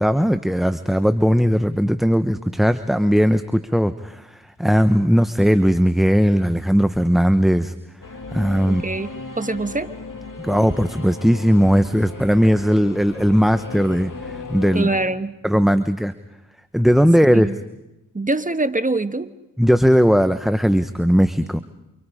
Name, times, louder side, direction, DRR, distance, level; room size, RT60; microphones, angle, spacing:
voice 1, 0.0-7.7 8.3-8.8 10.4-14.9 15.4-16.1 16.7-17.5 19.6-21.6, equal, ahead, 10 dB, 1.0 m, -18 dB
Singing / Musical instrument, 8.0-15.0, left 3 dB, 60° left, 2.9 m, -36 dB
voice 2, 8.7-9.1 9.4-9.9 14.7-15.4 17.3-17.6 18.1-19.3, right 2 dB, 20° right, 11 dB, 1.4 m, -24 dB
29.0 x 28.5 x 5.0 m, 0.91 s
cardioid pair, 60°, 37 cm